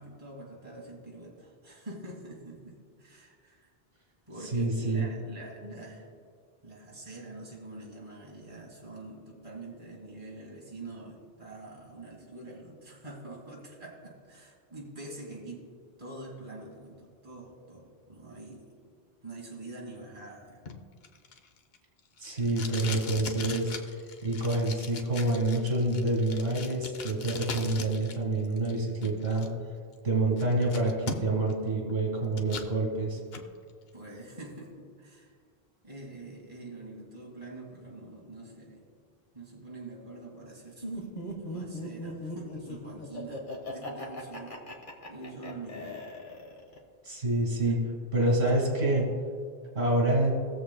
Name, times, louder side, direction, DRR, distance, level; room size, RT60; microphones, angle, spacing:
voice 1, 0.0-3.7 4.3-6.1 6.6-15.7 16.0-18.8 19.2-20.6 33.9-35.3 35.8-38.8 39.3-41.0 41.5-44.6 45.1-46.0 48.5-48.6, right 2 dB, 30° right, -3 dB, 2.1 m, -45 dB
voice 2, 4.5-5.1 22.2-29.5 30.0-33.2 47.0-49.1 49.8-50.3, right 2 dB, 75° right, -2 dB, 2.1 m, -27 dB
Packing tape duct tape, 20.7-28.2 28.4-29.5 29.9-30.0 30.4-31.5 31.9-32.7 33.1-33.5, left 5 dB, 75° left, 1.0 m, -40 dB
Laughter, 40.8-46.8, left 1 dB, 55° left, 1.5 m, -39 dB
19.0 x 7.3 x 2.2 m, 2.2 s
omnidirectional pair, 1.0 m